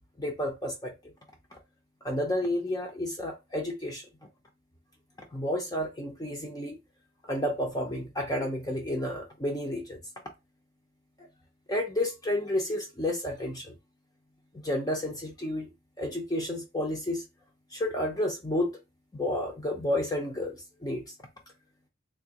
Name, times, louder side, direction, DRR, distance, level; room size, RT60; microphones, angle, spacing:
voice 1, 0.2-0.9 2.0-4.1 5.3-6.8 7.3-10.0 11.7-13.7 14.6-15.7 16.0-17.2 17.7-18.8 19.1-21.0, left 1 dB, 15° left, 0.6 m, -31 dB
3.5 x 2.9 x 2.9 m
head